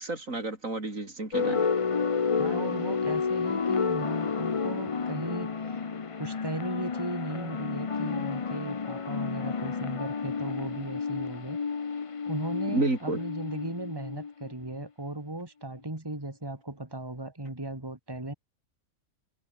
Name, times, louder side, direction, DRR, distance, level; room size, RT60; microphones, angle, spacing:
voice 1, 0.0-1.6 12.7-13.2, right 2 dB, 70° right, 5.1 m, -30 dB
sound 1, 1.3-14.7, left 5 dB, 30° left, 0.6 m, -31 dB
voice 2, 2.4-5.8 6.2-11.6 11.9-18.3, right 1 dB, 15° right, 2.9 m, -37 dB
omnidirectional pair, 1.4 m